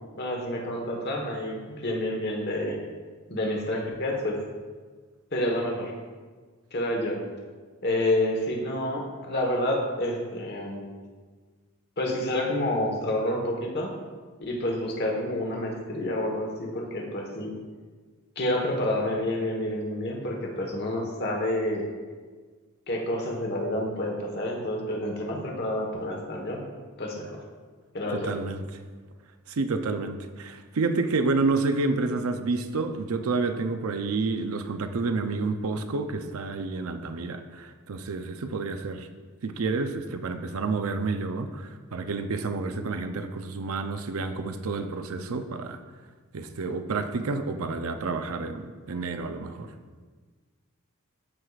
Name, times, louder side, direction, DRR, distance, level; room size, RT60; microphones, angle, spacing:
voice 1, 0.1-2.8 3.3-4.4 5.3-5.9 6.7-7.2 7.8-10.9 12.0-13.9 14.4-17.5 18.4-21.9 22.9-26.6 27.0-27.4 27.9-28.3, left 1 dB, 50° left, 0 dB, 1.3 m, -29 dB
voice 2, 28.1-28.6 29.5-39.1 39.4-45.8 46.3-49.7, right 3 dB, 80° right, 8 dB, 0.5 m, -29 dB
13.5 x 4.8 x 2.4 m, 1.5 s
head